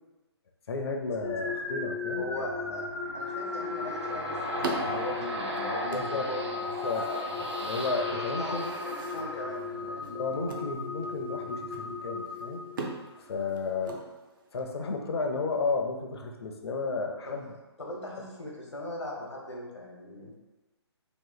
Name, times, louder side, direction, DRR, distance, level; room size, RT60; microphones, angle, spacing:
voice 1, 0.7-2.5 5.9-6.3 6.8-7.0 7.6-8.6 10.0-12.6 13.2-14.0 14.5-17.5 18.2-18.3, left 4 dB, 65° left, 3 dB, 0.6 m, -33 dB
sound 1, 1.2-13.2, left 4 dB, 10° left, 0.4 m, -37 dB
voice 2, 2.2-2.9 3.1-7.5 8.0-10.1 17.3-17.4 17.8-20.3, left 1 dB, 85° left, -2 dB, 1.0 m, -39 dB
sound 2, 2.6-10.1, equal, 85° right, 0.7 m, -37 dB
sound 3, 3.6-14.7, right 3 dB, 50° right, 0.5 m, -43 dB
3.0 x 2.5 x 3.9 m, 1.1 s
figure-of-eight pair, 140°, 14 cm